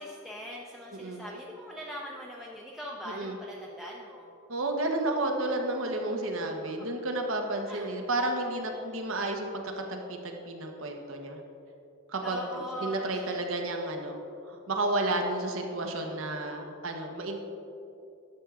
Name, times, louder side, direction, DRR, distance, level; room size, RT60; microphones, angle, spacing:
voice 1, 0.0-4.4 6.8-6.9 7.7-7.9 8.8-8.9 12.2-13.5, equal, ahead, -4 dB, 0.5 m, -41 dB
voice 2, 3.1-3.4 4.5-11.4 12.1-14.2 14.5-17.4, right 2 dB, 65° right, 3 dB, 1.1 m, -32 dB
10.5 x 7.2 x 3.7 m, 2.7 s
head